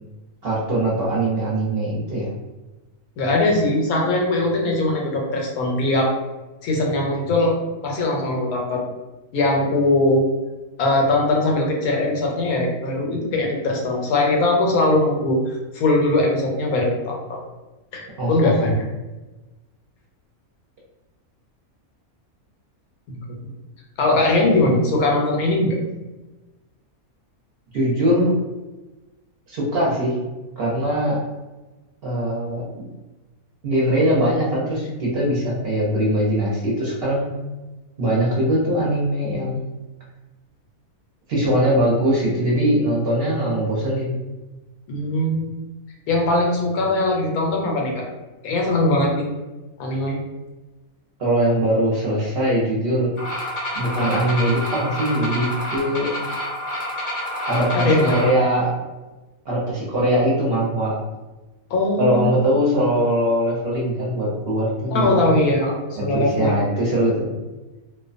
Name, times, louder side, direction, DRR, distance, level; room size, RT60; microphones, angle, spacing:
voice 1, 0.4-2.3 18.2-18.6 27.7-28.3 29.5-30.2 30.6-31.2 32.0-32.7 33.6-37.3 38.0-39.6 41.3-44.2 51.2-53.1 53.7-56.1 57.5-58.7 59.4-60.9 62.0-65.3 66.0-67.3, right 1 dB, 55° right, -5 dB, 0.8 m, -21 dB
voice 2, 3.2-6.1 6.6-7.6 7.8-8.8 9.3-10.2 10.8-15.4 15.7-17.4 17.9-18.7 23.1-23.4 24.0-25.8 44.9-45.5 46.1-48.0 48.4-49.2 49.8-50.2 57.7-58.2 61.7-62.3 64.9-66.5, left 2 dB, 90° left, 0 dB, 1.1 m, -20 dB
sound 1, 53.2-58.3, left 1 dB, 50° left, 0.6 m, -28 dB
2.5 x 2.2 x 2.4 m, 1.1 s
omnidirectional pair, 1.5 m